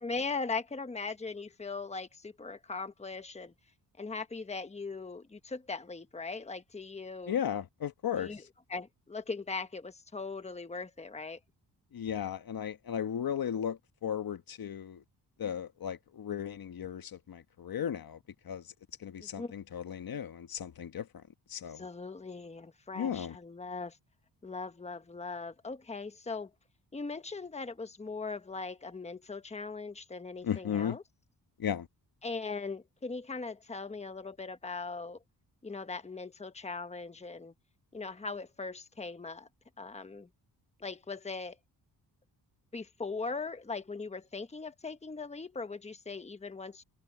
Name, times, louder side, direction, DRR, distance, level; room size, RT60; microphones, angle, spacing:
voice 1, 0.0-3.5 4.0-7.4 8.2-8.4 8.7-11.4 19.2-19.5 21.7-24.0 24.4-26.5 26.9-31.0 32.2-35.2 35.6-37.5 37.9-39.5 39.8-40.3 40.8-41.5 42.7-46.8, left 4 dB, 15° left, 1.2 m, -39 dB
voice 2, 7.3-8.3 11.9-15.0 15.4-18.2 18.4-18.6 19.0-21.2 21.5-21.9 22.9-23.4 30.4-31.0 31.6-31.9, left 9 dB, 60° left, 1.3 m, -35 dB
cardioid pair, 105°, 40 cm